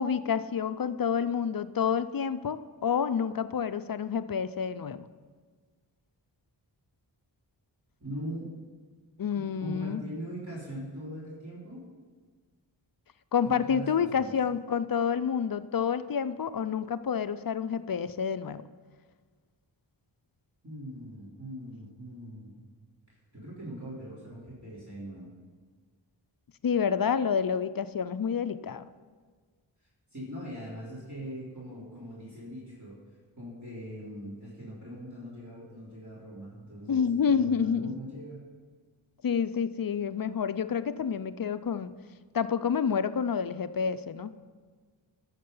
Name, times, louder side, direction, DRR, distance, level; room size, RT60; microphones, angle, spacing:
voice 1, 0.0-5.1 9.2-10.0 13.3-18.6 26.6-28.9 36.9-37.9 39.2-41.9 42.3-44.3, left 7 dB, 50° left, 13 dB, 0.5 m, -28 dB
voice 2, 8.0-8.5 9.3-11.9 13.4-14.3 20.6-22.6 23.3-25.3 30.1-33.0 33.4-38.4, equal, 35° right, -8 dB, 3.8 m, -41 dB
13.5 x 6.7 x 5.5 m, 1.5 s
wide cardioid pair, 55°, 47 cm